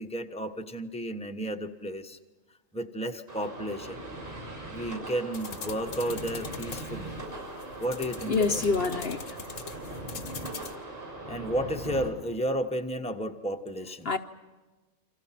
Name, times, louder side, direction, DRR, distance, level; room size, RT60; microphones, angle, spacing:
voice 1, 0.0-2.2 2.7-4.0 4.7-7.2 7.8-8.6 11.3-14.2, right 1 dB, 5° left, 1.2 m, -33 dB
sound 1, 3.3-12.1, right 2 dB, 45° right, 6.9 m, -40 dB
sound 2, 5.3-10.8, left 6 dB, 80° left, 1.7 m, -43 dB
voice 2, 8.3-9.4 14.0-14.2, left 4 dB, 55° left, 1.1 m, -26 dB
29.0 x 26.0 x 5.9 m
omnidirectional pair, 1.3 m